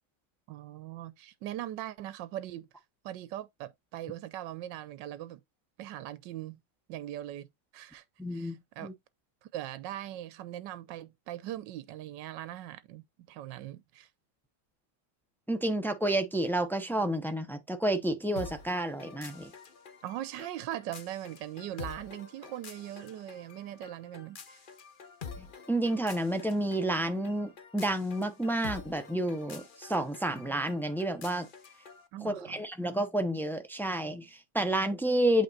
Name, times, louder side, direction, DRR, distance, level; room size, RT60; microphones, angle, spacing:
voice 1, 0.5-2.7 3.0-5.4 5.8-6.6 6.9-8.0 8.3-8.9 9.4-14.1 20.0-24.7 32.1-32.6, right 13 dB, 80° right, 1.4 m, -40 dB
voice 2, 8.2-8.9 15.5-19.5 25.4-31.5 32.2-35.4, right 1 dB, 5° left, 0.4 m, -30 dB
sound 1, 18.4-32.1, left 5 dB, 40° left, 0.7 m, -48 dB
8.3 x 3.6 x 4.1 m
omnidirectional pair, 1.9 m